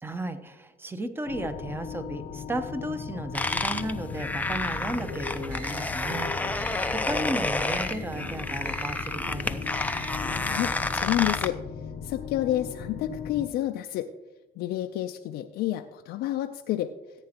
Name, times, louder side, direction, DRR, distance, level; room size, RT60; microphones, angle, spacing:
voice 1, 0.0-9.6, right 1 dB, 15° right, 10 dB, 0.8 m, -34 dB
sound 1, 1.3-13.5, left 7 dB, 50° left, 0.8 m, -39 dB
sound 2, 3.3-11.5, left 2 dB, 10° left, 0.5 m, -30 dB
sound 3, 5.0-10.5, left 1 dB, 60° right, 3.8 m, -41 dB
voice 2, 10.4-11.6 12.0-14.1 14.6-16.9, left 13 dB, 75° left, 5 dB, 0.5 m, -29 dB
15.0 x 8.7 x 2.9 m, 1.0 s
cardioid pair, 110°, 17 cm